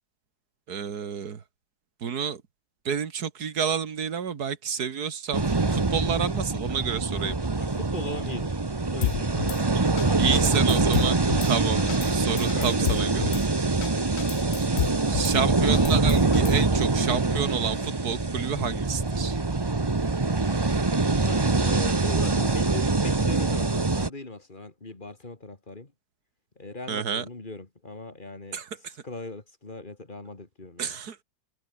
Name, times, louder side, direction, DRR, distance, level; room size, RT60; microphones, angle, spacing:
voice 1, 0.7-1.4 2.0-2.4 2.9-7.6 9.7-9.9 10.2-11.2 11.4-11.8 12.1-13.2 15.1-19.4 26.9-27.3 28.5-28.9 30.8-31.2, right 7 dB, 85° right, 2.2 m, -29 dB
sound 1, 5.3-24.1, right 3 dB, 20° right, 0.9 m, -24 dB
voice 2, 7.6-8.6 8.9-9.6 10.0-10.6 11.8-12.0 12.5-13.5 13.9-14.2 21.2-25.9 26.6-28.6 29.0-31.0, left 2 dB, 30° left, 2.5 m, -40 dB
Drum kit / Snare drum, 9.0-9.6 10.0-10.1 10.3-11.5 11.9-12.1 12.4-13.4 13.8-13.9 14.2-15.4 15.7-16.7, left 13 dB, 70° left, 0.6 m, -30 dB
omnidirectional pair, 1.6 m